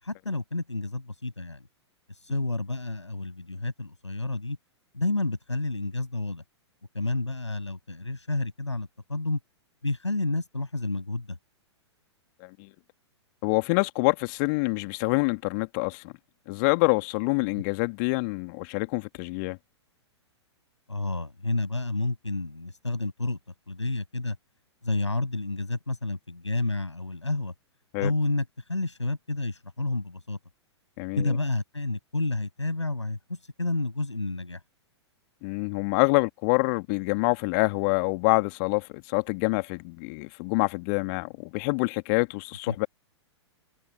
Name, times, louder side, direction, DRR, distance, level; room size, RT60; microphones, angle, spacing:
voice 1, 0.0-1.6 2.3-4.6 4.9-6.4 6.9-9.4 9.8-11.4 17.5-17.6 20.9-23.4 23.7-24.4 24.8-27.5 28.0-30.4 31.2-34.6 42.7-42.8, left 2 dB, 85° left, 7.9 m, -30 dB
voice 2, 13.4-16.1 16.5-19.6 27.9-28.1 31.0-31.4 35.4-42.9, left 31 dB, 40° left, 2.0 m, -26 dB
figure-of-eight pair, 105°, 15 cm